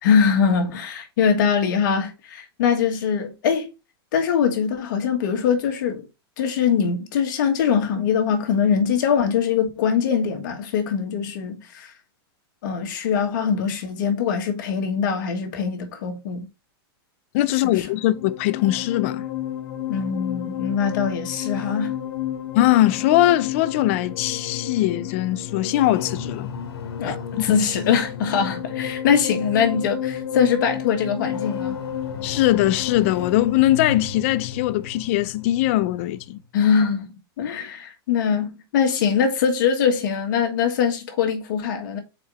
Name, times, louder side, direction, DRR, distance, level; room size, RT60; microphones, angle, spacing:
voice 1, 0.0-3.7 4.1-6.0 6.4-11.9 12.6-16.5 17.6-17.9 19.9-21.9 27.0-31.8 36.5-42.0, left 7 dB, 50° left, 1.5 m, -22 dB
voice 2, 17.3-19.2 22.5-26.5 27.0-27.5 32.2-36.4, left 15 dB, 30° left, 0.4 m, -21 dB
sound 1, 17.9-36.4, left 9 dB, 90° left, 1.3 m, -32 dB
4.8 x 4.4 x 4.9 m
supercardioid pair, 170°, 13 cm